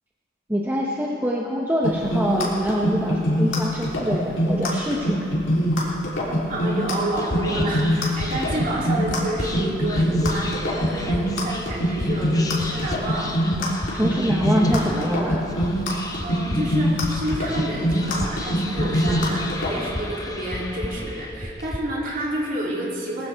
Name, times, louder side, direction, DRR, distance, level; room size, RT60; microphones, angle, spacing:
voice 1, 0.5-5.2 13.9-15.4, equal, 10° right, -3 dB, 0.9 m, -24 dB
sound 1, 1.8-19.7, equal, 90° left, 3.3 m, -23 dB
voice 2, 6.5-13.4 16.2-23.3, right 1 dB, 45° right, -5 dB, 3.1 m, -29 dB
Whispering, 7.1-21.8, left 1 dB, 20° left, 0.8 m, -33 dB
19.0 x 15.0 x 3.5 m, 2.7 s
head